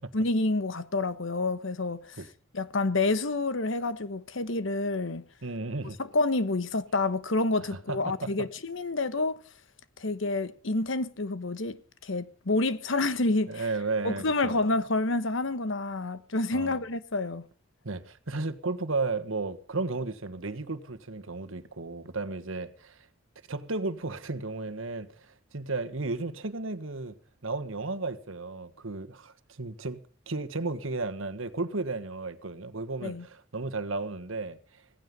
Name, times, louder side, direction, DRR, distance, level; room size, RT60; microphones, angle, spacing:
voice 1, 0.1-2.2 2.5-5.2 6.0-9.4 10.0-11.8 12.0-13.6 14.0-17.5 33.0-33.3, left 2 dB, 65° left, 1.1 m, -28 dB
voice 2, 5.4-6.0 7.6-8.5 13.5-14.6 16.5-16.8 17.8-23.1 23.5-27.1 27.4-34.8, right 3 dB, 80° right, 1.5 m, -34 dB
16.5 x 16.0 x 5.4 m
head